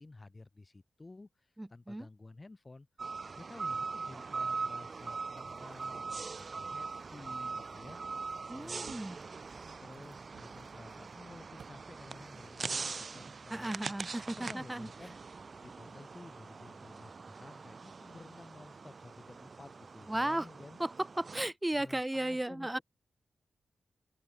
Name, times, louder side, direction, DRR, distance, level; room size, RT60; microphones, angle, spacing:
voice 1, 0.0-2.9 3.4-8.0 8.5-9.1 9.8-13.8 14.1-15.2 15.6-20.8 21.8-22.8, left 2 dB, 35° left, 5.9 m, -53 dB
voice 2, 1.6-2.1 8.5-9.2 13.5-14.9 20.1-20.5 20.8-20.9 21.2-22.8, right 1 dB, 15° right, 0.7 m, -35 dB
sound 1, 3.0-21.5, right 4 dB, 55° right, 0.5 m, -42 dB
sound 2, 4.8-11.7, right 8 dB, 80° right, 6.0 m, -63 dB
open air
supercardioid pair, 40°, 0 cm